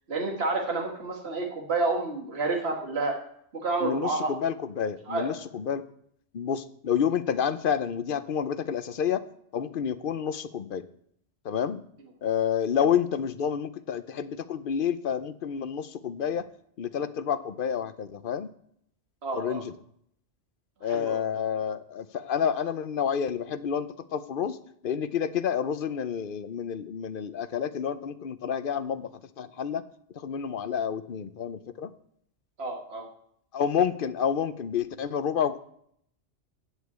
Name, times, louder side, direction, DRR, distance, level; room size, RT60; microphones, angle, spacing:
voice 1, 0.1-3.1 3.6-4.3 5.1-5.3 19.2-19.6 20.8-21.2 32.6-33.1, right 3 dB, 60° right, 1 dB, 2.0 m, -29 dB
voice 2, 3.8-5.8 6.3-9.2 9.5-10.8 11.4-11.8 12.2-16.5 16.8-18.5 19.3-19.7 20.8-24.6 24.8-29.1 29.4-29.8 30.1-31.9 33.5-35.6, left 8 dB, 55° left, 13 dB, 0.8 m, -29 dB
8.3 x 8.1 x 8.2 m, 0.68 s
omnidirectional pair, 1.2 m